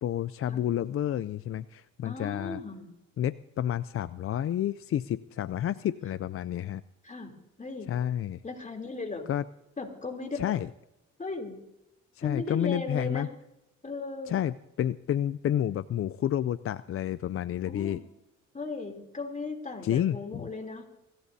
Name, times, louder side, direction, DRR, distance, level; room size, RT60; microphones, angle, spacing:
voice 1, 0.0-2.6 3.2-6.8 7.9-8.4 9.3-9.4 10.3-10.7 12.1-13.3 14.3-18.0 19.8-20.5, left 11 dB, 50° left, 14 dB, 0.4 m, -30 dB
voice 2, 2.0-2.9 7.0-7.3 7.6-7.9 8.4-9.2 9.8-10.4 11.2-11.6 12.2-13.3 13.8-14.3 17.7-18.0 18.5-20.8, left 3 dB, 25° left, 3 dB, 3.2 m, -36 dB
24.0 x 15.5 x 2.8 m, 0.91 s
cardioid pair, 90°, 30 cm